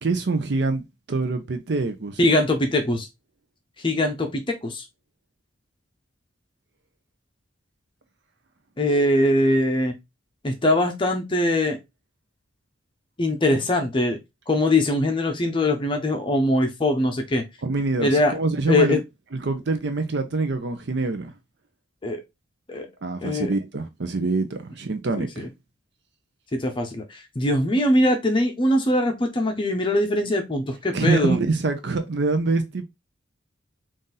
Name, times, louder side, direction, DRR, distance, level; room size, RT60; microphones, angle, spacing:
voice 1, 0.0-2.2 17.6-19.0 19.4-21.3 23.0-25.5 30.9-32.8, right 3 dB, 60° right, 0.6 m, -25 dB
voice 2, 2.2-3.1 3.8-4.8 8.8-9.9 10.4-11.8 13.2-14.2 14.5-17.4 18.0-18.3 18.7-19.0 22.0-22.2 22.7-22.9 23.2-23.5 25.2-25.5 26.5-31.4, left 1 dB, 25° left, 0.6 m, -22 dB
3.9 x 2.5 x 3.8 m
head